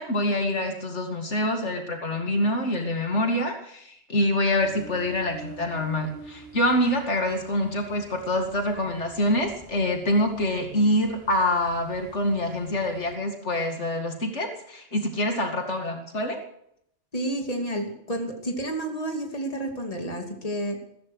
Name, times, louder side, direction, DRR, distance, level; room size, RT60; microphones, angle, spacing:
voice 1, 0.0-16.4, left 1 dB, 80° left, 4 dB, 2.5 m, -26 dB
Ocean, 4.6-13.1, right 3 dB, 15° left, 6.8 m, -47 dB
voice 2, 17.1-20.8, right 1 dB, 30° left, 3 dB, 2.9 m, -30 dB
15.5 x 14.5 x 6.3 m, 0.72 s
omnidirectional pair, 1.2 m